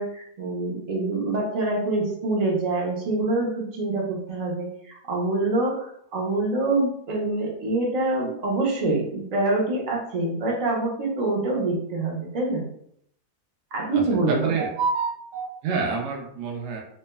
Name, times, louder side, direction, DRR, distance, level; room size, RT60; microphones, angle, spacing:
voice 1, 0.0-12.6 13.7-14.6, right 2 dB, 50° right, -2 dB, 0.5 m, -25 dB
voice 2, 14.3-16.8, right 4 dB, 65° right, -1 dB, 0.9 m, -27 dB
3.1 x 2.1 x 2.2 m, 0.70 s
omnidirectional pair, 1.6 m